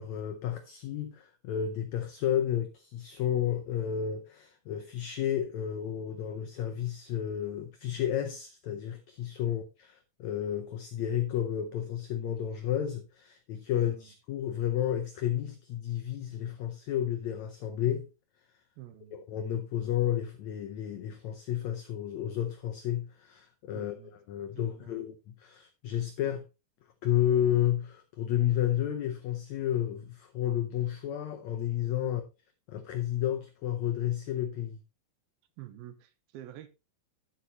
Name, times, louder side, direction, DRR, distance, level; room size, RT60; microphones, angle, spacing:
voice 1, 0.0-18.1 19.1-24.0 24.3-26.4 27.0-32.2 32.7-34.8, left 10 dB, 85° left, 1.6 m, -31 dB
voice 2, 13.7-14.1 18.8-19.2 23.7-24.1 24.5-25.0 32.0-32.2 35.6-36.7, right 12 dB, 90° right, 2.8 m, -48 dB
9.6 x 8.5 x 3.1 m
omnidirectional pair, 4.3 m